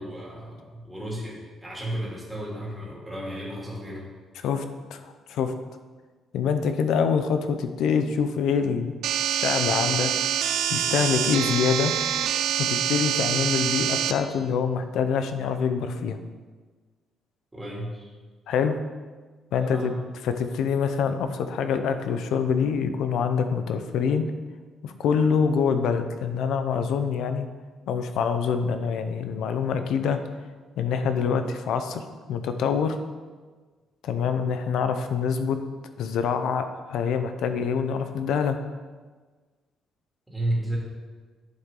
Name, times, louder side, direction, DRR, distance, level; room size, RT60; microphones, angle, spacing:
voice 1, 0.0-4.1 17.5-18.1 19.6-19.9 40.3-40.8, right 1 dB, 10° right, -5 dB, 2.7 m, -33 dB
voice 2, 4.9-5.5 6.3-8.9 9.2-10.1 10.7-11.9 12.6-16.2 18.5-18.8 19.5-19.9 20.2-24.3 24.8-27.5 27.9-30.2 30.8-32.0 32.3-33.0 34.0-35.6 36.0-38.6, left 6 dB, 75° left, 8 dB, 0.7 m, -25 dB
sound 1, 9.0-14.1, right 9 dB, 80° right, 0.5 m, -25 dB
10.5 x 7.2 x 3.8 m, 1.4 s
cardioid pair, 135°, 0 cm